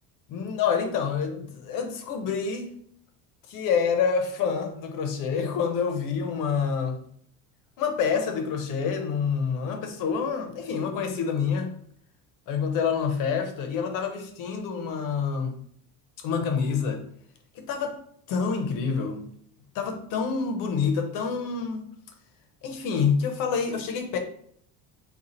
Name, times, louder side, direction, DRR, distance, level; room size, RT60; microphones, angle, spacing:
voice 1, 0.3-2.7 3.5-7.0 7.8-11.7 12.5-15.5 16.2-17.0 17.6-18.0 18.3-19.2 19.7-21.8 22.6-24.2, left 6 dB, 60° left, 5 dB, 0.8 m, -27 dB
3.9 x 2.4 x 4.3 m, 0.65 s
cardioid pair, 155°, 37 cm